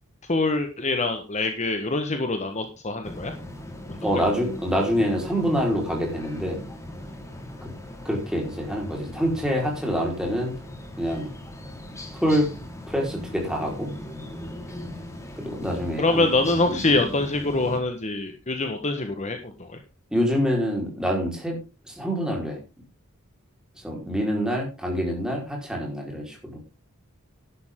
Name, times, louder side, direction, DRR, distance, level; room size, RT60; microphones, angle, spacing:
voice 1, 0.3-3.3 3.9-4.0 16.0-19.8, left 2 dB, 30° left, 6 dB, 1.3 m, -25 dB
sound 1, 3.0-17.8, left 1 dB, 15° left, 2.5 m, -39 dB
voice 2, 4.0-6.6 7.6-7.7 8.0-10.5 11.0-11.3 12.2-12.5 12.9-13.9 15.4-16.3 16.7-17.0 20.1-21.6 21.9-22.6 23.8-26.6, equal, 5° right, 0 dB, 4.5 m, -26 dB
12.0 x 11.0 x 3.8 m, 0.30 s
head